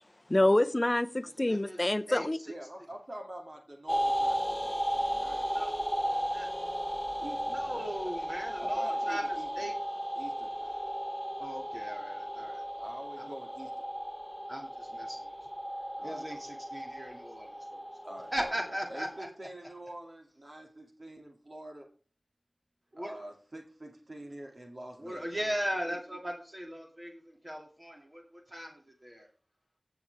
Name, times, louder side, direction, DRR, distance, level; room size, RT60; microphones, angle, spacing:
voice 1, 0.3-2.4, left 1 dB, 30° left, 0.6 m, -26 dB
voice 2, 1.5-2.5 5.5-5.8 6.3-6.5 7.5-9.7 11.4-12.6 13.2-13.3 14.5-15.5 16.0-17.8 18.3-19.3 22.9-23.2 25.0-29.3, equal, 30° right, 2.5 m, -38 dB
voice 3, 2.5-6.3 7.2-7.6 8.6-9.7 10.2-10.8 12.8-13.9 15.9-16.4 18.0-18.5 18.9-21.9 23.0-25.5 25.9-26.2, right 1 dB, 55° right, 2.5 m, -46 dB
sound 1, 3.9-19.3, equal, 5° left, 1.1 m, -35 dB
16.0 x 8.0 x 3.5 m
wide cardioid pair, 60°, 0 cm